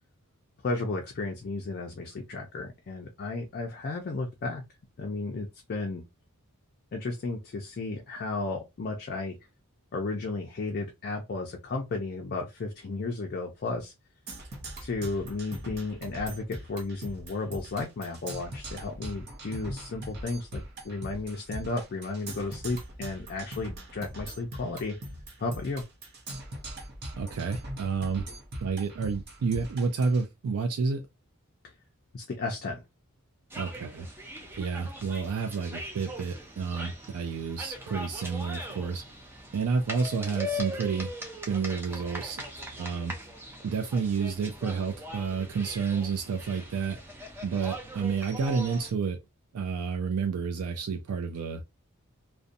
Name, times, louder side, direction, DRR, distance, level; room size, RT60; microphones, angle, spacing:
voice 1, 0.6-4.6 5.0-6.0 6.9-9.4 9.9-13.9 14.8-25.0 25.4-25.8 32.1-32.8, left 3 dB, 45° left, 0.4 m, -33 dB
Percussion, 14.3-30.2, right 1 dB, 45° right, 0.7 m, -41 dB
voice 2, 27.2-28.3 28.6-31.0 33.6-34.1 34.6-39.0 39.5-41.1 41.5-42.4 42.8-43.1 43.6-47.0 47.4-49.2 49.5-51.8, right 5 dB, 80° right, 0.4 m, -30 dB
sound 1, 33.5-48.9, equal, 10° right, 0.5 m, -40 dB
2.6 x 2.1 x 2.5 m
head